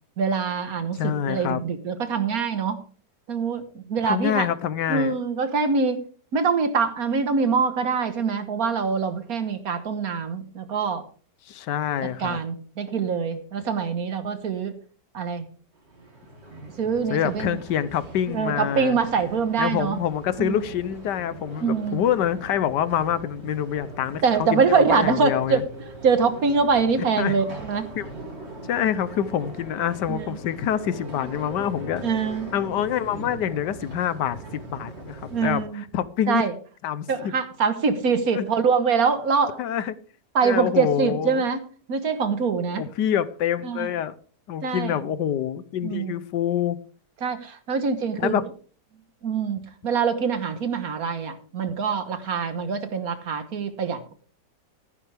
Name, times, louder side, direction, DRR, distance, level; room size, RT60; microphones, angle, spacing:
voice 1, 0.2-2.8 3.3-4.5 4.9-6.0 6.3-11.1 12.2-14.8 15.1-15.5 16.8-17.6 18.3-20.0 20.4-20.6 21.6-22.0 24.2-25.6 26.0-27.8 30.1-30.4 32.0-32.5 35.3-35.8 36.3-36.5 37.1-39.6 40.3-41.6 41.9-42.9 43.6-43.9 44.6-45.0 45.8-46.2 47.2-48.5 49.2-54.1, right 5 dB, 60° right, 1.6 m, -24 dB
voice 2, 0.9-1.6 4.0-5.1 11.5-12.4 17.1-19.0 19.6-25.6 27.2-27.4 28.0-28.1 28.7-32.0 32.5-36.4 36.8-37.3 38.3-38.5 39.6-40.0 40.4-41.4 42.8-44.1 44.5-46.8 48.2-48.4, left 10 dB, 85° left, 1.4 m, -26 dB
sound 1, 15.7-35.6, right 2 dB, 40° right, 3.1 m, -40 dB
14.0 x 11.0 x 3.4 m
omnidirectional pair, 1.8 m